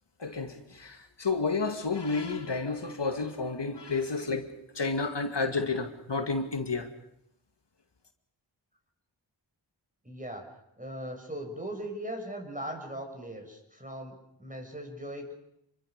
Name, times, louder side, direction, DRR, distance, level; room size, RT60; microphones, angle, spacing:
voice 1, 0.2-4.5 4.7-6.9, left 4 dB, 65° left, 2.3 m, -31 dB
voice 2, 10.0-15.4, right 1 dB, 15° right, 6.5 m, -39 dB
28.0 x 24.0 x 6.7 m
wide cardioid pair, 65°, 46 cm